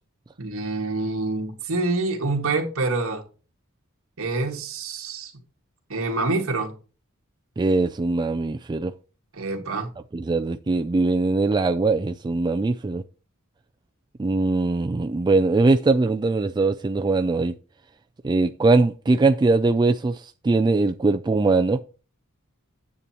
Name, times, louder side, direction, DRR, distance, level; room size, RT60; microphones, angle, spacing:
voice 1, 0.4-3.2 4.2-5.3 5.9-6.7 9.3-9.9, right 3 dB, 65° right, 1.9 m, -26 dB
voice 2, 7.6-8.9 10.1-13.0 14.2-17.6 18.2-21.8, right 3 dB, 20° right, 0.3 m, -21 dB
9.5 x 8.4 x 2.9 m
head